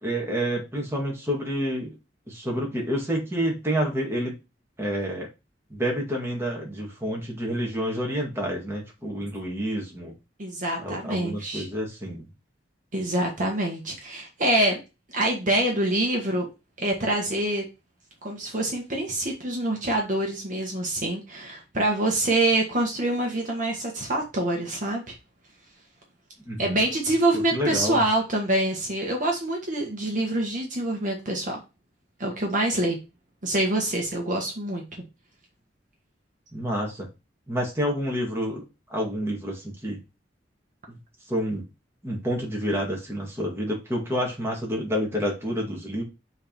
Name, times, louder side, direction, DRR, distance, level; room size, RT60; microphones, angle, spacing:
voice 1, 0.0-2.0 2.3-4.4 4.8-5.3 5.7-10.1 10.8-12.3 26.5-26.8 27.3-28.0 36.5-37.1 37.5-38.6 38.9-40.0 40.9-41.0 41.3-41.6 42.0-46.0, equal, 15° right, -2 dB, 2.1 m, -28 dB
voice 2, 10.4-11.7 12.9-14.8 15.1-16.5 16.8-17.6 18.2-25.1 26.6-31.6 32.2-33.0 33.4-34.8, right 1 dB, 45° right, 0 dB, 1.5 m, -25 dB
6.5 x 3.6 x 4.6 m, 0.27 s
head